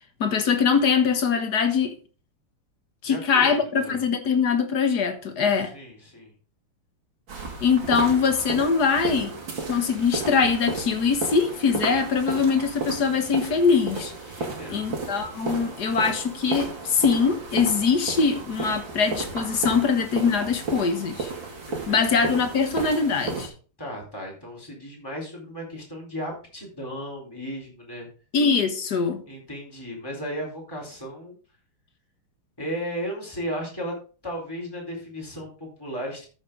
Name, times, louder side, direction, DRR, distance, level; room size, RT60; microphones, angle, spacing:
voice 1, 0.2-2.0 3.0-5.7 7.6-9.3 9.6-14.1 14.7-21.3 21.9-23.5 28.3-29.2, left 5 dB, 50° left, 1.9 m, -22 dB
voice 2, 3.0-4.0 5.7-6.3 14.4-14.9 21.7-22.0 23.8-28.1 29.3-31.4 32.6-33.9 34.2-36.3, equal, 10° left, 4.2 m, -35 dB
sound 1, 7.3-23.5, right 3 dB, 60° right, 3.3 m, -33 dB
13.5 x 6.6 x 3.9 m
omnidirectional pair, 2.4 m